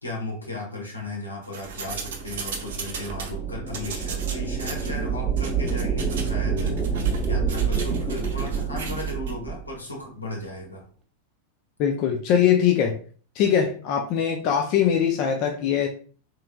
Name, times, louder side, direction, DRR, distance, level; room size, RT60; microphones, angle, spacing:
voice 1, 0.0-10.8, left 2 dB, 85° left, -1 dB, 1.1 m, -35 dB
sound 1, 1.4-3.3 3.7-4.9 5.4-6.3 6.6-9.3, right 5 dB, 60° right, 0.6 m, -37 dB
sound 2, 1.6-9.7, right 6 dB, 10° right, 0.7 m, -28 dB
voice 2, 11.8-13.0 13.4-15.9, left 8 dB, 40° left, 2 dB, 0.5 m, -22 dB
3.3 x 3.1 x 2.2 m, 0.41 s
figure-of-eight pair, 90°, 0 cm